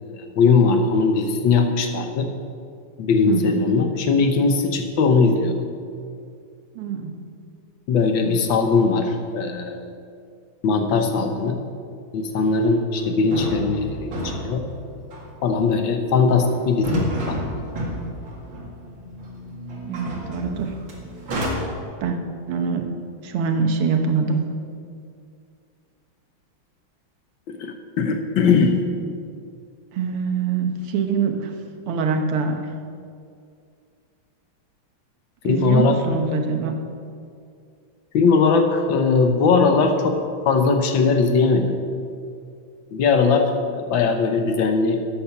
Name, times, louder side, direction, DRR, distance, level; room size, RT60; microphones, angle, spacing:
voice 1, 0.0-2.3 3.0-5.6 7.9-9.8 10.6-11.6 12.1-14.6 15.4-17.4 27.5-28.8 35.4-36.0 38.1-41.8 42.9-45.0, left 4 dB, 65° left, 5 dB, 1.7 m, -20 dB
voice 2, 3.3-3.6 6.8-7.1 8.2-8.5 19.9-20.7 22.0-22.2 22.5-22.9 23.2-24.4 29.9-31.5 31.9-32.6 35.5-36.8, right 5 dB, 85° right, 5 dB, 2.0 m, -24 dB
sound 1, 12.5-12.6 13.0-13.1 13.3-21.5, equal, 65° right, 2.8 m, -31 dB
13.0 x 8.6 x 5.9 m, 2.3 s
omnidirectional pair, 2.3 m